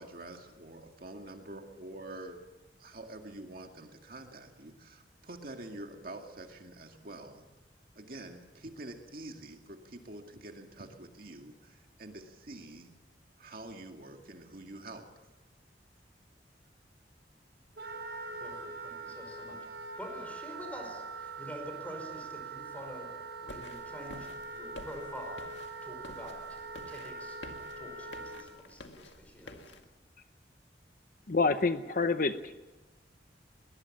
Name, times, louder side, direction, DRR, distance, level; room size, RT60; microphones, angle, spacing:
voice 1, 0.0-2.4 2.8-7.4 8.0-12.9 13.4-15.1, right 2 dB, 55° right, 4 dB, 2.1 m, -46 dB
Wind instrument woodwind instrument, 17.8-28.4, right 3 dB, 70° right, 6.9 m, -43 dB
voice 2, 18.4-19.6 20.0-23.1 23.4-25.4 25.8-26.6 26.9-27.4 27.8-29.8, equal, 10° left, 3 dB, 5.4 m, -46 dB
sound 1, 23.5-29.8, left 2 dB, 85° left, 2.0 m, -50 dB
voice 3, 31.3-32.5, left 4 dB, 50° left, 10 dB, 0.7 m, -27 dB
22.0 x 20.0 x 7.3 m, 1.1 s
head